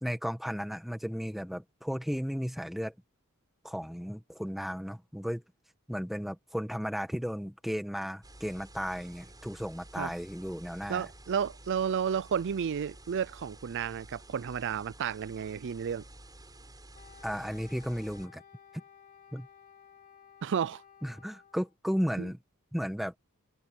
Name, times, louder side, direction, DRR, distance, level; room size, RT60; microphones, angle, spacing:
voice 1, 0.0-2.9 3.6-5.4 5.9-11.1 17.2-18.4 19.3-19.5 21.0-22.4 22.7-23.1, equal, ahead, 1.7 m, -34 dB
sound 1, 8.2-18.3, right 1 dB, 20° right, 7.2 m, -52 dB
voice 2, 10.9-16.0 20.4-20.8 22.2-22.3, right 7 dB, 55° right, 0.4 m, -32 dB
Wind instrument woodwind instrument, 16.9-21.7, left 7 dB, 35° left, 3.1 m, -56 dB
head